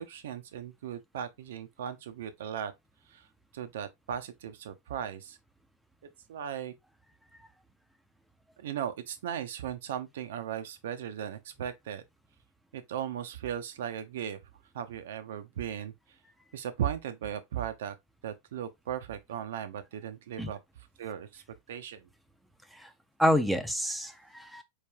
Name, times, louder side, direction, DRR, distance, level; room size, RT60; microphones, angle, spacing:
voice 1, 0.0-2.7 3.1-3.3 3.5-5.4 6.3-6.7 8.6-12.0 12.7-14.4 14.7-16.2 16.5-18.0 18.2-20.6 21.0-22.1, right 9 dB, 60° right, 0.5 m, -37 dB
voice 2, 23.2-24.6, equal, ahead, 0.5 m, -28 dB
4.4 x 3.2 x 2.3 m
figure-of-eight pair, 90°, 0 cm